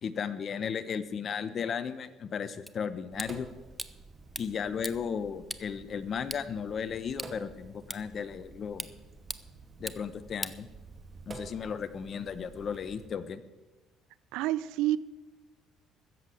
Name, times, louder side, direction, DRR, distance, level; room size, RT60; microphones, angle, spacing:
voice 1, 0.0-3.5 4.4-8.9 9.8-10.7 11.3-13.4, left 7 dB, 50° left, 13 dB, 1.0 m, -35 dB
sound 1, 2.7-11.3, right 1 dB, 5° right, 0.8 m, -44 dB
Sink (filling or washing), 3.1-13.1, right 3 dB, 35° right, 2.3 m, -50 dB
voice 2, 14.3-15.0, right 15 dB, 80° right, 18 dB, 0.5 m, -28 dB
14.0 x 7.7 x 8.5 m, 1.2 s
supercardioid pair, 80°, 0 cm